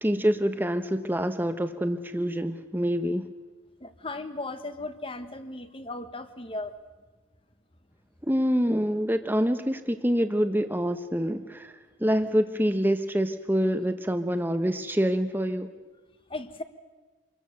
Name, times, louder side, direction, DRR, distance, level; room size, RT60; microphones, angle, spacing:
voice 1, 0.0-3.2 8.2-11.7 12.0-15.7, equal, 10° right, 8 dB, 1.0 m, -26 dB
voice 2, 3.8-6.7 16.3-16.6, left 2 dB, 30° left, 9 dB, 1.3 m, -36 dB
27.0 x 22.0 x 6.6 m, 1.3 s
head